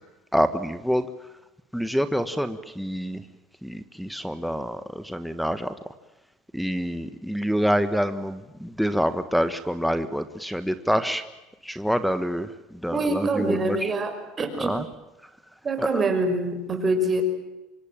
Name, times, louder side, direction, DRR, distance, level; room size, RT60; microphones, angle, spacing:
voice 1, 0.3-1.1 1.7-3.3 3.6-5.7 6.5-11.2 11.6-13.9 14.6-14.8 15.2-15.3 15.8-16.0, equal, ahead, 9 dB, 1.4 m, -26 dB
voice 2, 12.9-14.8 15.6-17.2, right 2 dB, 25° right, 7 dB, 5.8 m, -25 dB
26.0 x 23.0 x 8.9 m, 0.96 s
supercardioid pair, 120°, 0 cm